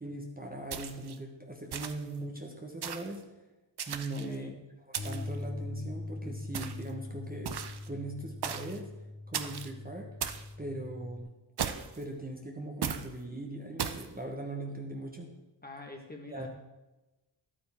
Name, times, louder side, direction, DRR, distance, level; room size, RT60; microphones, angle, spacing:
voice 1, 0.0-3.2 3.9-4.5 4.9-7.5 7.9-8.9 9.3-10.1 10.6-11.3 11.9-15.3 16.3-16.5, right 2 dB, 20° right, 1 dB, 1.1 m, -40 dB
sound 1, 0.7-1.2 1.7-2.2 2.8-3.2 3.8-4.4 4.9-5.4 6.5-6.9 7.5-7.9 8.4-8.8 9.3-9.7 10.2-10.5 11.6-12.0 12.8-13.1 13.8-14.1, right 7 dB, 60° right, 0.7 m, -36 dB
voice 2, 4.2-4.6 6.2-6.3 15.6-16.5, left 2 dB, 20° left, 1 dB, 1.5 m, -45 dB
Bass guitar, 5.0-11.2, left 2 dB, 50° left, 1.1 m, -42 dB
11.5 x 8.7 x 3.6 m, 1.1 s
wide cardioid pair, 105°, 45 cm